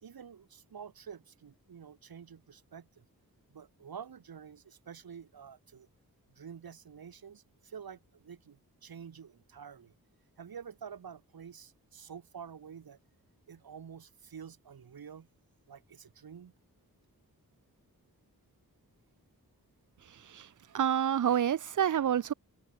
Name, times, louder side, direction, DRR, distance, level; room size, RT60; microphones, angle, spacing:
voice 1, 0.0-3.0 3.5-5.9 6.3-9.9 10.4-13.0 13.5-15.3 15.7-16.5, right 7 dB, 85° right, 2.0 m, -48 dB
voice 2, 20.7-22.3, right 9 dB, 60° right, 0.6 m, -28 dB
wide cardioid pair, 125°, 35 cm